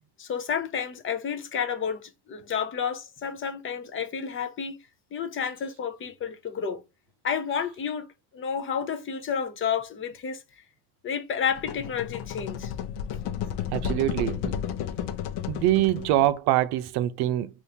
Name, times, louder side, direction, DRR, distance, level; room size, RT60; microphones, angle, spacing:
voice 1, 0.2-4.8 5.1-6.8 7.2-8.1 8.3-10.4 11.0-12.7, left 7 dB, 30° left, 0.5 m, -30 dB
sound 1, 11.5-16.4, left 8 dB, 75° left, 0.6 m, -32 dB
voice 2, 13.7-14.5 15.5-17.5, right 14 dB, 75° right, 0.6 m, -24 dB
3.6 x 2.5 x 2.7 m
cardioid pair, 135°, 39 cm